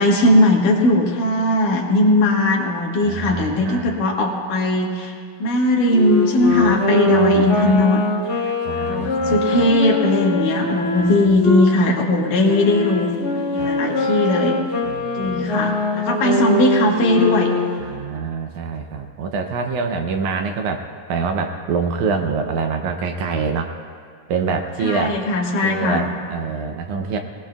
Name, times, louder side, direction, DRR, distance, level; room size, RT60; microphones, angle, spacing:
voice 1, 0.0-5.1 5.4-8.0 8.8-14.6 15.1-17.5 24.8-26.1, left 1 dB, 75° left, -1 dB, 3.1 m, -18 dB
voice 2, 3.0-3.9 6.6-6.8 7.1-7.8 8.6-9.7 13.6-13.7 14.8-15.7 17.8-23.7 24.3-25.2 25.6-27.2, right 5 dB, 75° right, 4 dB, 2.0 m, -26 dB
Wind instrument woodwind instrument, 5.9-11.7 12.4-17.9, left 2 dB, 35° left, 1.7 m, -22 dB
20.0 x 19.5 x 2.3 m, 2.1 s
omnidirectional pair, 3.8 m